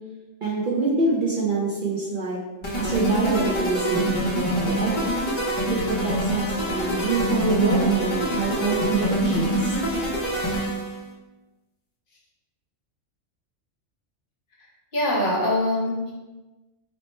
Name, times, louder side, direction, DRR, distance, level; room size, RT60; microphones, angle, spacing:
voice 1, 0.4-2.4 2.8-5.1 5.7-5.8 6.0-9.8, right 3 dB, 55° right, -5 dB, 0.6 m, -25 dB
sound 1, 2.6-11.0, right 1 dB, 30° left, 0.6 m, -25 dB
voice 2, 14.9-16.1, left 1 dB, 50° left, -4 dB, 0.9 m, -23 dB
3.0 x 2.1 x 4.1 m, 1.1 s
omnidirectional pair, 1.2 m